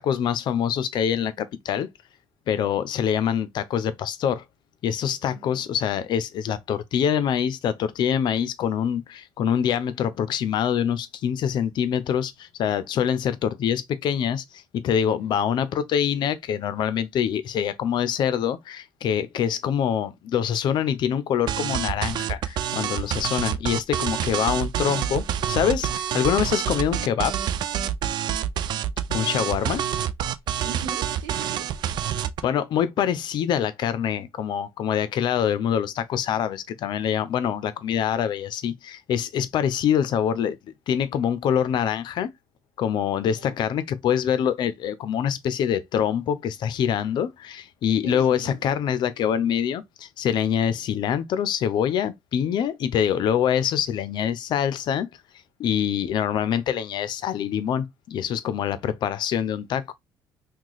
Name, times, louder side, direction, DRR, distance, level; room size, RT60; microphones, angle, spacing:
voice 1, 0.0-1.9 2.5-4.4 4.8-27.4 29.1-29.8 32.4-40.6 40.9-42.3 42.8-55.1 55.6-59.8, left 9 dB, 60° left, 0.6 m, -25 dB
voice 2, 5.3-5.7 15.2-15.3 29.4-30.0 30.6-31.7 43.3-43.5 48.0-48.6, right 7 dB, 90° right, 1.0 m, -40 dB
sound 1, 21.5-32.4, right 10 dB, 55° right, 0.4 m, -27 dB
3.0 x 2.3 x 3.9 m
cardioid pair, 95°, 9 cm